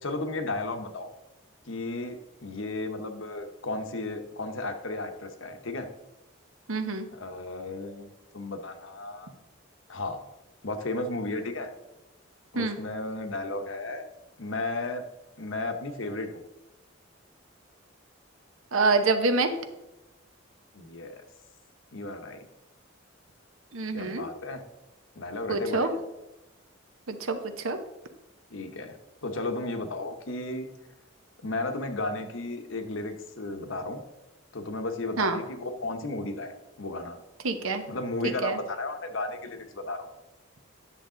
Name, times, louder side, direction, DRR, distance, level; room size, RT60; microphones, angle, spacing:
voice 1, 0.0-1.1 1.7-5.9 7.1-9.3 9.9-10.2 10.6-11.7 12.5-14.0 14.4-15.0 15.4-16.4 20.7-21.2 21.9-22.4 23.9-24.6 25.2-26.0 28.5-30.7 31.4-34.0 34.5-36.5 36.8-37.2 37.9-40.1, left 2 dB, 70° left, 6 dB, 1.0 m, -34 dB
voice 2, 6.7-7.1 12.5-12.8 18.7-19.5 23.7-24.2 25.5-25.9 27.1-27.8 35.2-35.4 37.4-37.8 38.4-38.6, right 3 dB, 85° right, 8 dB, 0.9 m, -26 dB
10.0 x 6.7 x 3.8 m, 0.98 s
head